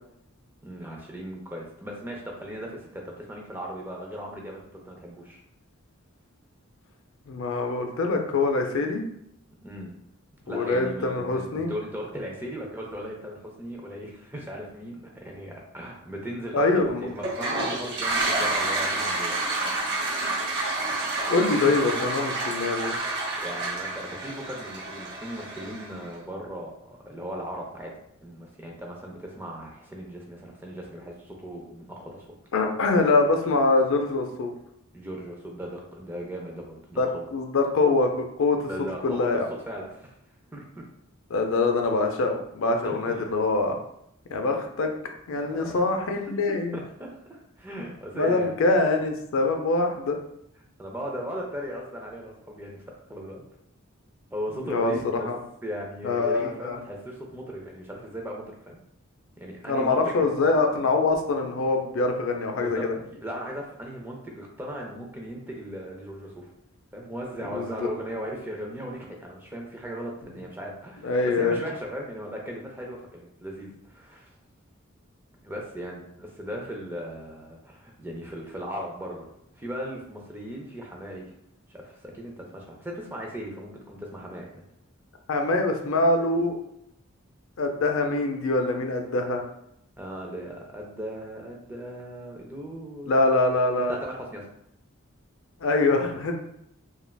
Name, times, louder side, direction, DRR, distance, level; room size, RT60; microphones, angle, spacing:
voice 1, 0.6-5.4 9.6-9.9 10.5-19.4 23.4-32.4 34.9-37.3 38.7-40.1 40.5-40.8 42.8-43.3 45.3-45.8 46.5-48.5 50.8-52.8 53.1-53.4 54.3-55.3 55.6-58.8 59.4-60.3 62.5-66.5 66.9-74.3 75.4-79.3 79.5-81.3 81.7-84.6 90.0-93.1 93.9-94.5, equal, 10° right, -1 dB, 0.4 m, -37 dB
voice 2, 7.3-9.0 10.5-11.7 16.5-17.1 21.3-23.0 32.5-34.5 37.0-38.7 39.0-39.5 41.3-43.8 44.3-44.9 45.3-46.8 48.1-50.2 54.6-54.9 55.3-55.4 56.0-56.8 59.7-62.9 67.5-67.7 71.0-71.6 85.3-86.6 87.6-89.4 93.1-94.0 95.6-96.4, left 3 dB, 70° left, 4 dB, 0.4 m, -24 dB
Toilet flush, 17.2-26.0, right 2 dB, 50° right, 0.7 m, -29 dB
3.2 x 2.4 x 2.2 m, 0.76 s
head